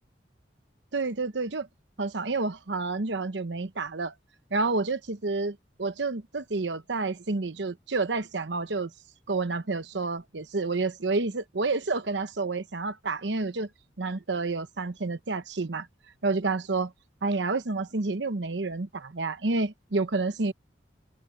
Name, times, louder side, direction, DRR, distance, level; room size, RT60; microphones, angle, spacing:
voice 1, 0.9-1.7 2.0-4.1 4.5-8.9 9.3-13.7 14.0-15.9 16.2-16.9 17.2-20.5, right 3 dB, 80° right, 1.0 m, -29 dB
open air
head